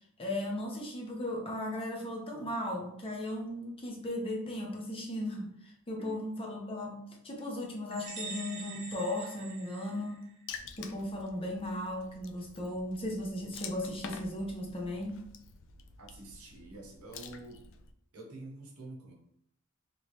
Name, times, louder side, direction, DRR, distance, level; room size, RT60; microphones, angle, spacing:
voice 1, 0.2-10.3 10.8-15.2, left 1 dB, 25° left, 0 dB, 0.7 m, -36 dB
sound 1, 7.9-10.5, right 4 dB, 55° right, 0.8 m, -44 dB
Water / Splash splatter, 10.5-17.9, left 6 dB, 60° left, 0.3 m, -48 dB
voice 2, 16.0-17.6 18.1-19.1, right 2 dB, 90° right, 0 dB, 0.8 m, -47 dB
3.0 x 2.9 x 2.9 m, 0.73 s
head